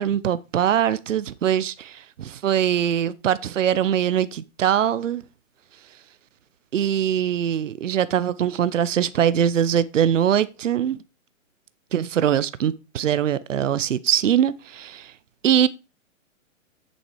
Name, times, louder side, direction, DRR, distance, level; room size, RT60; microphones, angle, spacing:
voice 1, 0.0-5.2 6.7-11.0 11.9-15.1 15.4-15.7, right 9 dB, 70° right, 0.8 m, -22 dB
8.5 x 7.3 x 4.8 m
hypercardioid pair, 175°, 39 cm